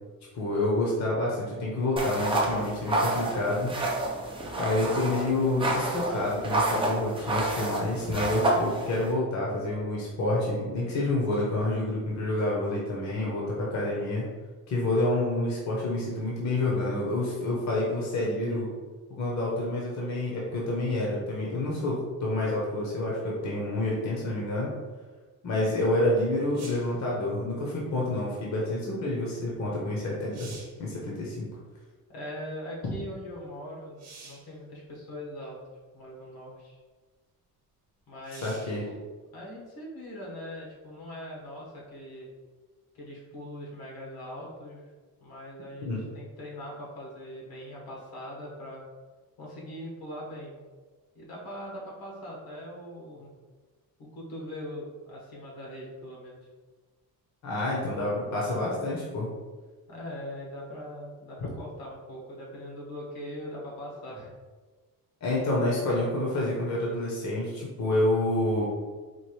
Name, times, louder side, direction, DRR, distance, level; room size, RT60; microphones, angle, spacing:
voice 1, 0.3-3.7 4.5-14.3 14.7-18.7 19.2-24.7 25.4-30.5 30.8-31.5 32.8-32.9 38.4-38.9 45.8-46.0 57.4-59.3 65.2-68.7, left 1 dB, 50° left, -4 dB, 0.9 m, -28 dB
sound 1, 2.0-9.1, right 2 dB, 15° right, 0.4 m, -29 dB
sound 2, 26.5-27.0 29.6-29.7 30.1-30.9 34.0-34.5 35.5-35.6 38.2-38.8 42.4-42.5, right 4 dB, 45° right, 0.9 m, -47 dB
voice 2, 32.1-35.6 35.9-36.8 38.1-38.8 39.3-42.3 42.9-44.8 45.2-48.8 49.4-50.6 51.1-53.3 54.0-56.4 59.9-64.3, equal, 80° left, -3 dB, 1.4 m, -41 dB
4.4 x 2.5 x 3.1 m, 1.3 s
cardioid pair, 150°, 37 cm